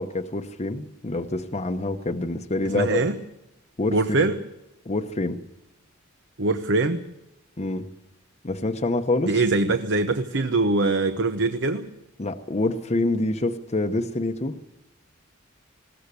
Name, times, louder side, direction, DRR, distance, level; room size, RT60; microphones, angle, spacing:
voice 1, 0.0-3.1 3.8-4.3 4.8-5.4 7.6-7.9 8.4-9.4 12.2-14.6, left 2 dB, 30° left, 0.9 m, -26 dB
voice 2, 2.7-3.1 3.9-4.4 6.4-7.0 9.3-11.9, right 3 dB, 60° right, 1.0 m, -23 dB
21.0 x 17.0 x 8.3 m
head